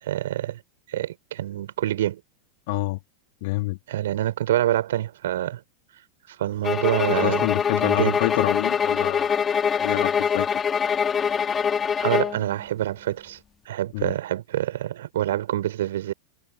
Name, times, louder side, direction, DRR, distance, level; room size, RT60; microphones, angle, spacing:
voice 1, 0.0-0.6 0.9-2.2 3.9-5.6 6.3-7.5 7.8-8.2 12.0-13.4 13.7-16.1, right 12 dB, 60° right, 4.3 m, -26 dB
voice 2, 2.7-3.0 3.4-3.8 7.1-10.5 13.9-14.1, left 22 dB, 50° left, 2.1 m, -28 dB
sound 1, 6.6-12.4, left 7 dB, 20° left, 1.9 m, -24 dB
figure-of-eight pair, 90°, 0 cm